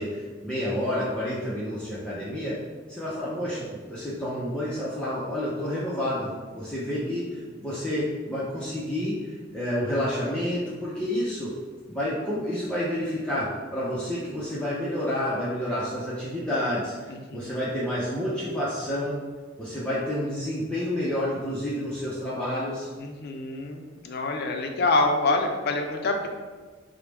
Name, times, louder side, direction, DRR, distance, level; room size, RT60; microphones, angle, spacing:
voice 1, 0.0-2.6 2.9-11.5 11.9-19.2 19.6-22.9, left 1 dB, 5° left, -10 dB, 0.5 m, -29 dB
voice 2, 6.9-7.3 17.1-17.7 23.0-26.3, left 3 dB, 55° left, 3 dB, 0.4 m, -27 dB
4.6 x 2.0 x 3.3 m, 1.4 s
head